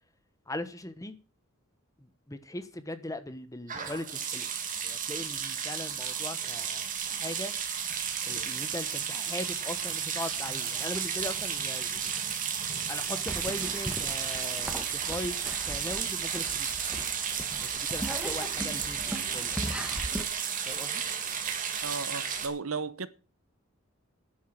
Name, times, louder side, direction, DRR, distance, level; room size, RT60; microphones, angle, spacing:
voice 1, 0.5-1.2 2.0-4.5 4.8-7.5 8.2-12.1 12.9-16.7 17.6-19.6 20.7-21.0, left 1 dB, 15° left, 1.2 m, -39 dB
sound 1, 3.7-22.5, right 7 dB, 40° right, 2.3 m, -33 dB
sound 2, 13.3-20.2, equal, 5° right, 1.6 m, -39 dB
voice 2, 21.8-23.1, right 4 dB, 75° right, 0.9 m, -35 dB
10.5 x 8.3 x 7.5 m
head